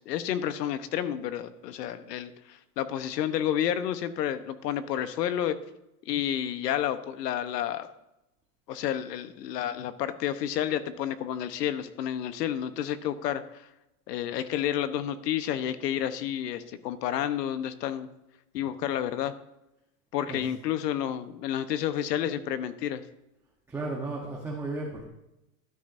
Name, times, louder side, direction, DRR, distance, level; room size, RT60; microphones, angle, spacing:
voice 1, 0.0-5.6 6.1-7.9 8.7-13.6 14.1-18.1 18.5-19.3 20.1-23.0, left 10 dB, 85° left, 11 dB, 1.1 m, -30 dB
voice 2, 23.7-25.0, right 2 dB, 5° right, -3 dB, 1.0 m, -34 dB
13.5 x 12.5 x 2.7 m, 0.91 s
supercardioid pair, 165°, 47 cm